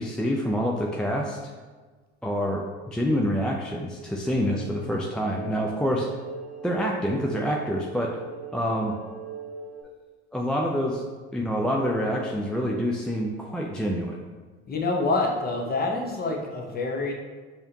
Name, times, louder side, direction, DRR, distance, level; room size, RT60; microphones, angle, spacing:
voice 1, 0.0-1.5 2.2-6.1 6.6-8.2 8.5-8.9 10.3-11.0 11.3-14.2, equal, 5° left, -1 dB, 0.3 m, -27 dB
sound 1, 4.3-9.8, right 5 dB, 50° right, 0.8 m, -40 dB
voice 2, 14.7-17.1, left 3 dB, 25° left, 1 dB, 0.8 m, -26 dB
4.7 x 2.8 x 2.8 m, 1.4 s
hypercardioid pair, 70°, 34 cm